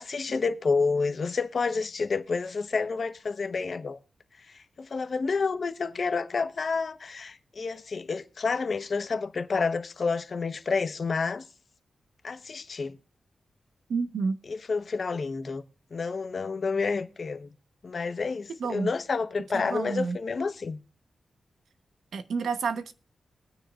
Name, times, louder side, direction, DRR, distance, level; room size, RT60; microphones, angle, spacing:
voice 1, 0.0-4.0 4.5-11.4 12.2-13.0 14.5-15.6 15.9-17.5 17.8-20.8, left 4 dB, 50° left, 1.0 m, -29 dB
voice 2, 13.9-14.4 18.6-18.9 19.5-20.2 22.1-22.9, right 5 dB, 90° right, 1.0 m, -29 dB
21.5 x 9.7 x 2.5 m
wide cardioid pair, 120°, 0 cm